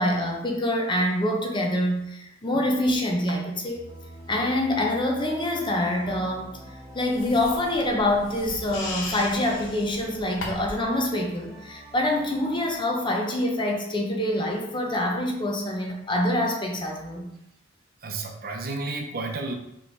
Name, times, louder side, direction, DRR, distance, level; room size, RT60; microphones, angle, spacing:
voice 1, 0.0-3.8 4.3-6.5 6.9-17.3, left 1 dB, 25° left, 1 dB, 0.7 m, -25 dB
sound 1, 3.7-12.8, equal, 20° right, 1.7 m, -45 dB
sound 2, 7.1-10.9, left 2 dB, 70° left, 0.8 m, -38 dB
voice 2, 18.0-19.5, right 3 dB, 50° right, 2 dB, 0.6 m, -32 dB
4.7 x 3.2 x 3.3 m, 0.80 s
head